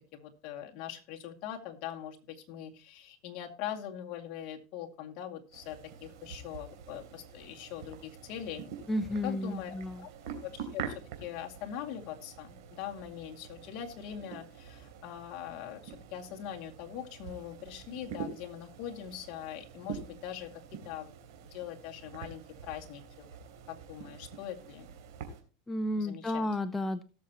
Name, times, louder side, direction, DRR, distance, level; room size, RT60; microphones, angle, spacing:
voice 1, 0.1-8.6 9.2-10.1 10.4-21.1 21.5-23.3 23.7-24.9 26.0-26.5, left 10 dB, 50° left, 2 dB, 2.2 m, -42 dB
sound 1, 5.5-25.4, right 7 dB, 75° right, 3.1 m, -46 dB
voice 2, 8.9-10.0 25.7-27.0, left 1 dB, 10° left, 9 dB, 0.6 m, -32 dB
18.0 x 7.2 x 2.9 m, 0.35 s
supercardioid pair, 140°, 2 cm